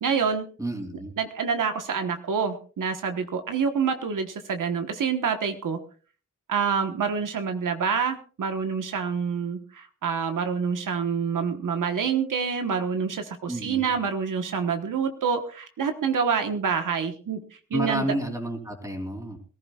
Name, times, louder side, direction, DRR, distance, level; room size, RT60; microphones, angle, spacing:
voice 1, 0.0-0.5 1.2-5.8 6.5-17.4 17.7-18.1, right 6 dB, 80° right, 6 dB, 1.3 m, -27 dB
voice 2, 0.6-1.1 13.5-13.9 17.7-19.4, right 1 dB, 10° right, 2 dB, 3.2 m, -30 dB
22.0 x 15.0 x 2.4 m, 0.39 s
wide cardioid pair, 135°, 31 cm